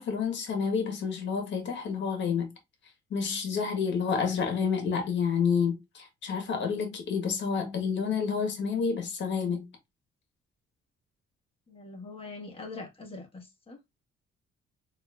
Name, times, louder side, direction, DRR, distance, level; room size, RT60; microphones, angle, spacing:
voice 1, 0.0-2.5 3.1-9.7, left 6 dB, 65° left, 1.4 m, -29 dB
voice 2, 11.7-13.8, left 3 dB, 30° left, 1.5 m, -43 dB
4.2 x 2.9 x 2.4 m
cardioid pair, 90°, 20 cm